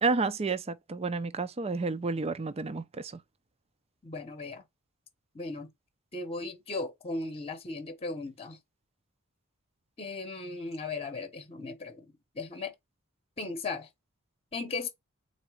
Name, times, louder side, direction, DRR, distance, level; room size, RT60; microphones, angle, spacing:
voice 1, 0.0-3.2, right 4 dB, 30° right, 0.5 m, -30 dB
voice 2, 4.0-4.6 5.3-5.7 6.1-8.6 10.0-12.1 12.3-12.7 13.4-13.9 14.5-14.9, left 3 dB, 25° left, 0.9 m, -37 dB
4.0 x 2.7 x 4.7 m
head